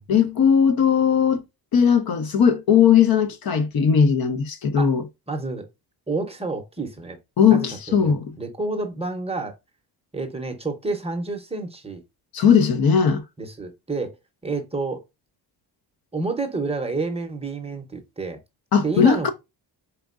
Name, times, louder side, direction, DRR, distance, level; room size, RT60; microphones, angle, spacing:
voice 1, 0.1-1.4 1.7-5.1 7.4-8.4 12.3-13.2 18.7-19.3, left 7 dB, 55° left, 0.7 m, -18 dB
voice 2, 5.3-5.7 6.1-7.2 7.5-9.5 10.1-12.0 13.4-14.2 14.4-15.0 16.1-18.4 18.8-19.3, right 3 dB, 15° right, 0.7 m, -29 dB
4.3 x 3.6 x 2.4 m
wide cardioid pair, 155°, 43 cm